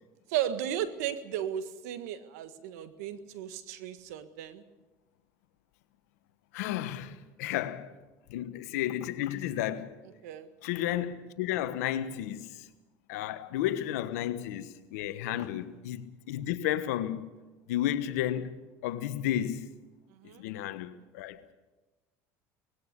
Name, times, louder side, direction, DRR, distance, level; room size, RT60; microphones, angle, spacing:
voice 1, 0.3-4.6 10.2-10.5 15.2-15.5 20.2-20.4, right 10 dB, 85° right, 1.6 m, -35 dB
voice 2, 6.5-7.9 8.3-10.0 10.6-12.7 13.1-17.3 17.7-19.7 20.2-21.4, left 12 dB, 85° left, 1.3 m, -33 dB
19.5 x 17.0 x 8.3 m
supercardioid pair, 100°, 8 cm